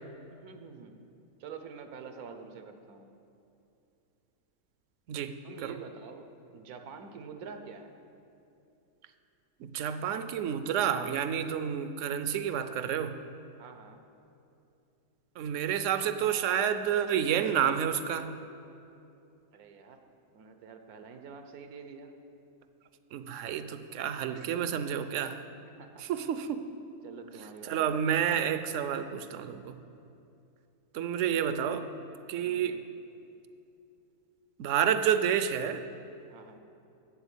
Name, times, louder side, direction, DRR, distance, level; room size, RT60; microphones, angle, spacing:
voice 1, 0.3-1.0 1.4-3.1 5.4-8.0 13.6-14.0 19.5-20.0 20.3-22.2 25.8-26.0 27.0-27.9 32.4-32.8 36.3-36.6, right 5 dB, 85° right, 7 dB, 1.3 m, -46 dB
voice 2, 9.6-13.2 15.4-18.3 23.1-25.4 26.0-26.7 27.7-29.8 30.9-31.9 32.3-32.8 34.6-35.8, right 8 dB, 65° right, 10 dB, 0.8 m, -29 dB
8.0 x 7.7 x 8.2 m, 2.7 s
omnidirectional pair, 1.5 m